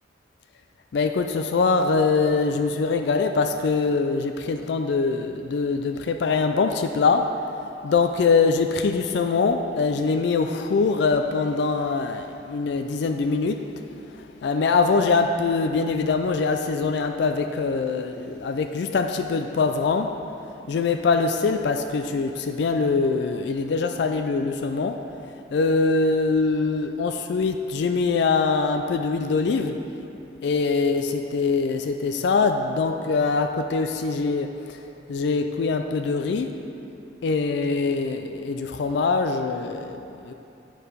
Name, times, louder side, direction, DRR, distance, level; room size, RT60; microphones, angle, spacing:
voice 1, 0.9-7.3 7.8-20.1 20.7-25.0 25.5-29.8 30.4-36.6 37.2-40.3, left 4 dB, 60° left, 6 dB, 0.3 m, -23 dB
8.7 x 4.6 x 5.0 m, 2.7 s
head